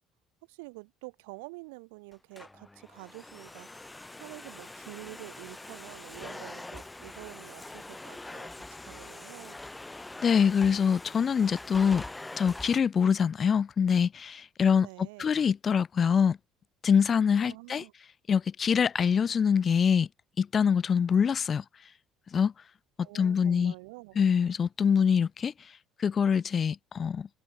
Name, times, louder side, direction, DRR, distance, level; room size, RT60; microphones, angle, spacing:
voice 1, 0.5-3.7 4.2-9.6 14.8-15.3 17.4-17.9 23.0-24.2, right 28 dB, 80° right, 3.2 m, -47 dB
Domestic sounds home sounds, 2.1-12.8, left 2 dB, 15° left, 2.5 m, -44 dB
voice 2, 10.2-12.0 12.4-16.4 16.8-17.8 18.3-20.1 20.4-21.6 22.3-22.5 23.1-23.7 24.2-25.5 26.0-27.3, left 7 dB, 40° left, 0.3 m, -24 dB
hypercardioid pair, 65°, 0 cm